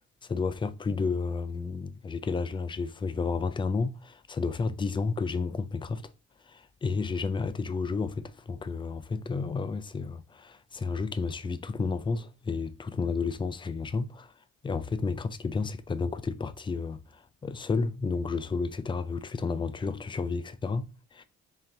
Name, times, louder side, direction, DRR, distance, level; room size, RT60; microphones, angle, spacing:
voice 1, 0.2-6.1 6.5-14.3 14.6-21.2, left 4 dB, 15° left, 0.3 m, -31 dB
3.7 x 3.7 x 2.8 m
cardioid pair, 90°, 30 cm